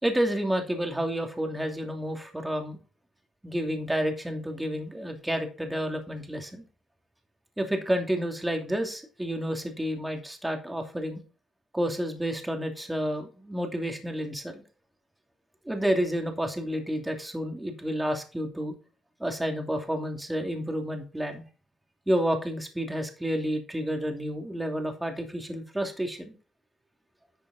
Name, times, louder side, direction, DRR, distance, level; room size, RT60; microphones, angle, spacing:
voice 1, 0.0-2.8 3.4-6.6 7.6-11.2 11.7-14.6 15.7-18.8 19.2-21.4 22.1-26.3, equal, 10° right, 3 dB, 2.8 m, -30 dB
11.5 x 6.7 x 4.3 m, 0.36 s
cardioid pair, 90°, 0 cm